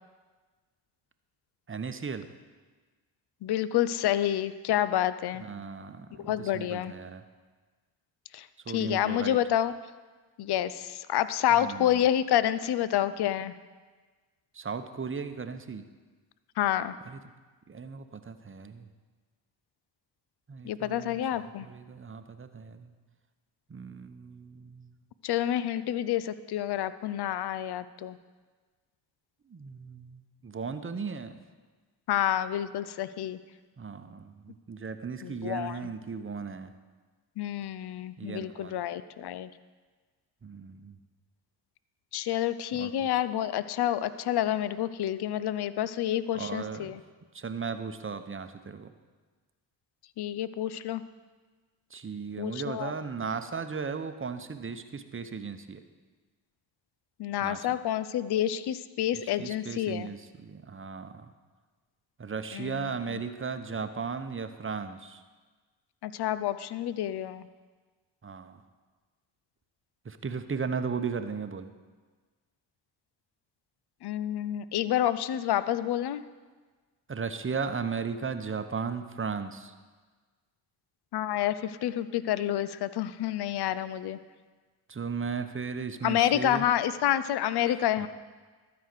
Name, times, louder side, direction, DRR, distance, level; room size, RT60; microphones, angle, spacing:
voice 1, 1.7-2.2 5.4-7.2 8.7-9.4 11.5-12.0 14.5-15.8 17.1-17.2 17.7-18.9 20.5-22.9 23.7-24.9 29.5-31.3 33.8-36.7 38.2-38.7 40.4-40.9 42.7-42.9 46.3-46.9 47.3-48.9 51.9-55.8 57.4-57.8 59.4-61.3 62.2-65.2 68.2-68.6 70.0-71.7 77.1-79.7 84.9-86.6 87.7-88.1, right 5 dB, 25° right, 9 dB, 0.9 m, -36 dB
voice 2, 3.4-5.4 6.2-6.9 8.3-9.7 10.4-13.5 16.6-16.9 20.6-21.7 25.2-28.2 32.1-33.4 35.2-35.8 37.4-39.5 42.1-47.0 50.2-51.0 52.4-52.9 57.2-60.1 62.5-63.2 66.0-67.4 74.0-76.2 81.1-84.2 86.0-88.1, left 11 dB, 55° left, 15 dB, 0.6 m, -28 dB
12.5 x 5.0 x 6.6 m, 1.4 s
hypercardioid pair, 45°, 48 cm